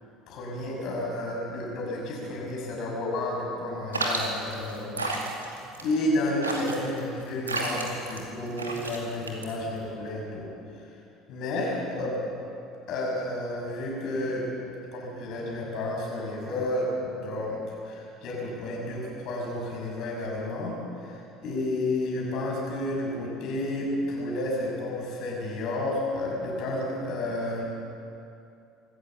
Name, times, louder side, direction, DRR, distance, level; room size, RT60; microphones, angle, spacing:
voice 1, 0.3-5.5 5.8-10.5 11.3-12.2 12.9-14.5 14.9-27.6, left 1 dB, 55° left, -2 dB, 6.5 m, -31 dB
sound 1, 3.9-9.9, right 2 dB, 85° right, 2.3 m, -32 dB
25.5 x 14.5 x 7.2 m, 2.6 s
figure-of-eight pair, 65°, 0 cm